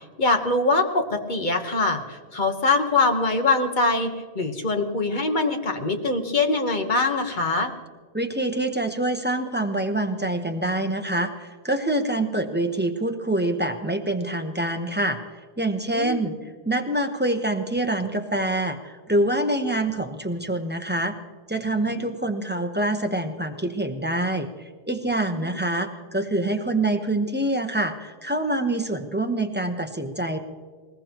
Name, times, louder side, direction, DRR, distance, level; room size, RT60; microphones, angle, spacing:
voice 1, 0.2-7.7 15.9-16.2 25.3-25.6, left 3 dB, 45° left, 5 dB, 1.3 m, -23 dB
voice 2, 8.1-16.3 16.6-21.2 21.5-30.4, right 1 dB, 10° right, 5 dB, 0.9 m, -26 dB
20.5 x 20.5 x 3.0 m, 1.5 s
omnidirectional pair, 1.1 m